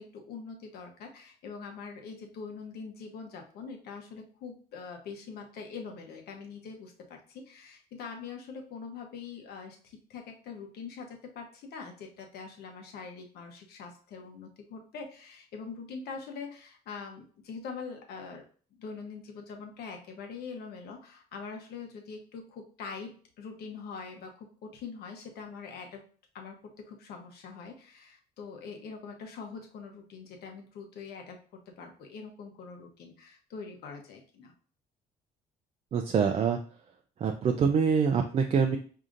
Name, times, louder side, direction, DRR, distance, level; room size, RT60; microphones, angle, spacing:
voice 1, 0.0-18.4 18.8-26.0 26.3-31.4 31.8-34.5, left 5 dB, 70° left, 3 dB, 0.9 m, -43 dB
voice 2, 35.9-36.6 37.2-38.8, right 6 dB, 40° right, 3 dB, 0.4 m, -25 dB
4.9 x 2.8 x 2.5 m, 0.43 s
cardioid pair, 110°, 17 cm